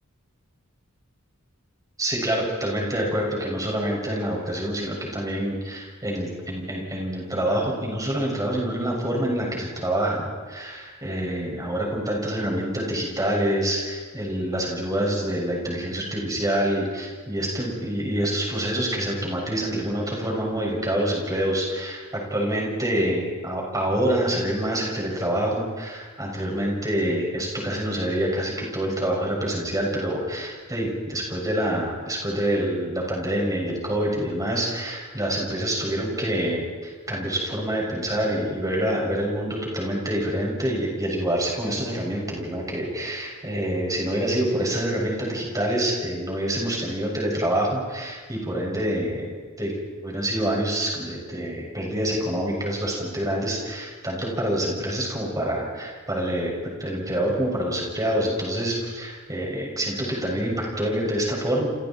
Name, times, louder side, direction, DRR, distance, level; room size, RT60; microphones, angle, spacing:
voice 1, 2.0-49.7 50.0-56.5 56.8-61.7, right 1 dB, 15° right, -2 dB, 6.8 m, -26 dB
29.0 x 28.5 x 4.6 m, 1.5 s
head